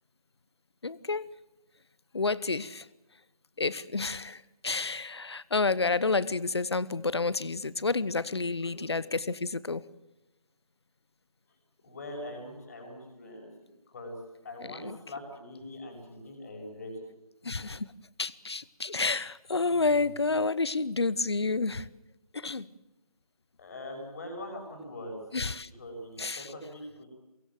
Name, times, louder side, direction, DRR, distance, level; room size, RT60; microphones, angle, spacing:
voice 1, 0.8-1.3 2.1-2.9 3.6-9.8 14.7-15.0 17.4-17.9 18.2-21.9 22.3-22.7 25.3-25.7 26.2-26.5, left 3 dB, 45° left, 1.0 m, -30 dB
voice 2, 11.8-14.1 14.4-17.1 23.6-25.2 25.8-27.1, left 1 dB, 25° left, 6.8 m, -42 dB
23.5 x 22.5 x 7.6 m
figure-of-eight pair, 165°, 19 cm